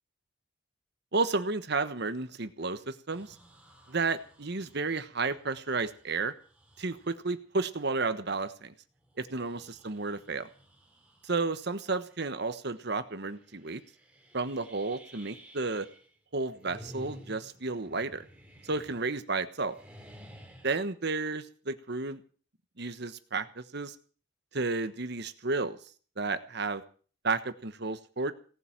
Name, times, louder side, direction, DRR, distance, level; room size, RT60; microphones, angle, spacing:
voice 1, 1.1-3.4 3.9-6.3 6.8-8.7 9.2-10.5 11.2-13.8 14.3-15.9 16.3-18.2 18.6-19.7 20.6-22.2 22.8-23.9 24.5-25.8 26.2-26.8 27.2-28.3, right 3 dB, 60° right, 10 dB, 1.3 m, -32 dB
sound 1, 3.1-7.2 7.8-8.0 8.9-11.5 11.9-12.4 12.7-12.8 13.3-16.1 16.4-19.3 19.6-20.8, equal, 5° right, 2.8 m, -53 dB
18.0 x 7.9 x 9.0 m, 0.42 s
head